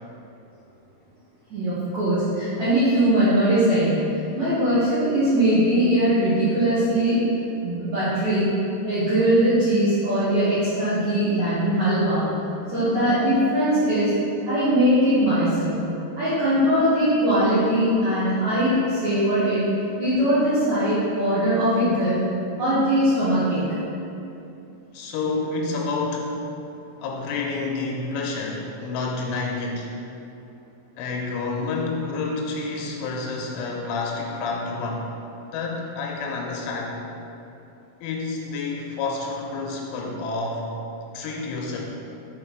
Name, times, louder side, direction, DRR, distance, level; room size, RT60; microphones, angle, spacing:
voice 1, 1.5-4.0 4.3-7.2 7.6-8.5 8.8-12.2 12.7-14.1 14.5-15.7 16.2-19.7 20.0-22.2 22.6-23.6, right 1 dB, 70° right, -13 dB, 1.7 m, -21 dB
voice 2, 24.9-26.4 27.0-29.9 31.0-35.1 35.5-37.0 38.0-40.7 41.1-41.8, left 3 dB, 85° left, -1 dB, 3.2 m, -29 dB
7.5 x 4.0 x 4.6 m, 2.7 s
omnidirectional pair, 5.5 m